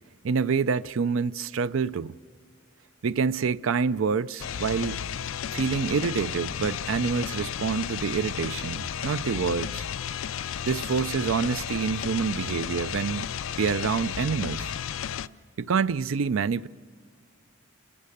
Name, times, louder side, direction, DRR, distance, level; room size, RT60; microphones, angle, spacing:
voice 1, 0.2-2.1 3.0-5.0 5.5-9.9 10.6-13.3 13.6-14.7 15.6-16.7, right 5 dB, 80° right, 0.5 m, -27 dB
sound 1, 4.4-15.3, left 8 dB, 85° left, 0.4 m, -33 dB
29.5 x 14.0 x 6.6 m
head